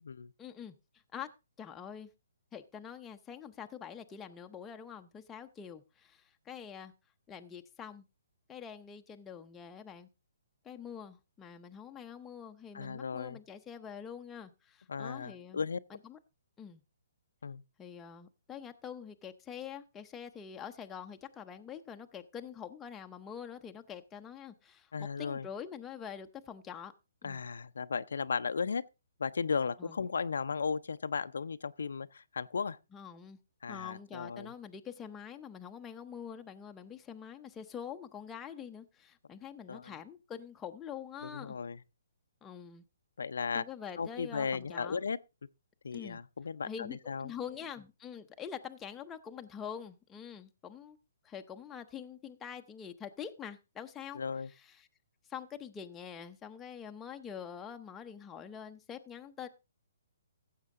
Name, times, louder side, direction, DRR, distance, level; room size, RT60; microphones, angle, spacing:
voice 1, 0.4-1.3 1.6-2.1 2.5-6.9 7.3-8.0 8.5-10.1 10.6-15.6 15.9-16.2 16.6-16.8 17.8-24.9 25.2-26.9 27.2-27.4 29.8-30.0 32.9-33.4 33.7-41.6 42.4-42.8 43.5-45.0 45.9-46.2 46.7-51.0 51.2-54.2 54.5-54.9 55.3-59.5, left 8 dB, 10° left, 0.7 m, -45 dB
voice 2, 12.7-13.4 14.9-15.8 17.4-17.6 24.9-25.5 27.2-28.8 29.2-32.8 33.6-34.5 39.7-39.9 41.2-41.8 43.2-43.6 44.0-45.2 45.8-47.3 54.1-54.5, left 5 dB, 85° left, 0.6 m, -35 dB
15.0 x 7.4 x 3.7 m
hypercardioid pair, 165°, 0 cm